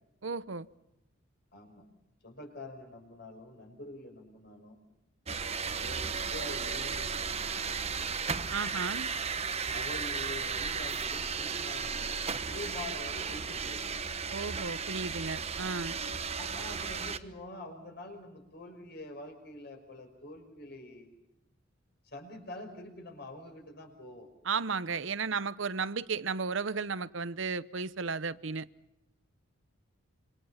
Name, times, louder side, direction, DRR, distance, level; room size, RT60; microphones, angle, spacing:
voice 1, 0.2-0.7 8.5-9.1 14.3-16.0 24.4-28.7, right 5 dB, 65° right, 0.8 m, -34 dB
voice 2, 1.5-1.9 2.2-4.8 5.8-8.2 9.7-14.0 16.3-21.1 22.1-24.3, left 1 dB, 50° left, 5.7 m, -46 dB
sound 1, 5.3-17.2, right 5 dB, 30° right, 1.1 m, -35 dB
27.0 x 25.5 x 5.8 m
head